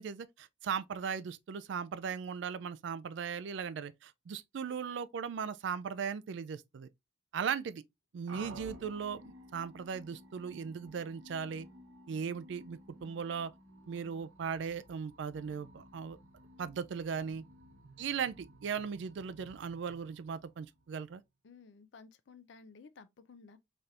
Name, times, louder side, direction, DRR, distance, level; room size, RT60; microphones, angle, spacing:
voice 1, 0.0-6.9 7.3-7.8 8.1-11.7 12.1-13.5 13.9-16.2 16.6-17.4 18.0-21.2, right 6 dB, 65° right, 0.3 m, -38 dB
sound 1, 8.3-21.1, right 1 dB, 85° right, 0.8 m, -54 dB
voice 2, 21.4-23.6, left 4 dB, 65° left, 0.4 m, -55 dB
4.2 x 3.3 x 2.4 m
head